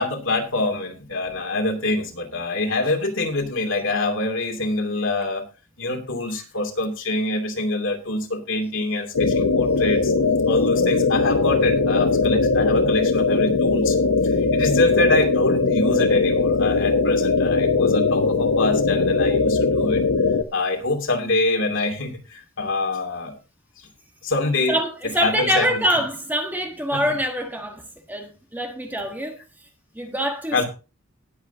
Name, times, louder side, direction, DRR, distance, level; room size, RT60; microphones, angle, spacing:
voice 1, 0.0-5.4 5.8-10.1 10.4-14.0 14.2-20.0 20.5-23.4 24.2-24.8 25.2-25.8 26.9-27.1 30.5-30.7, left 2 dB, 60° left, 2.7 m, -25 dB
sound 1, 9.1-20.4, left 4 dB, 85° left, 0.8 m, -20 dB
voice 2, 24.7-29.4 29.9-30.6, equal, 10° right, 1.4 m, -25 dB
19.5 x 8.1 x 2.7 m
head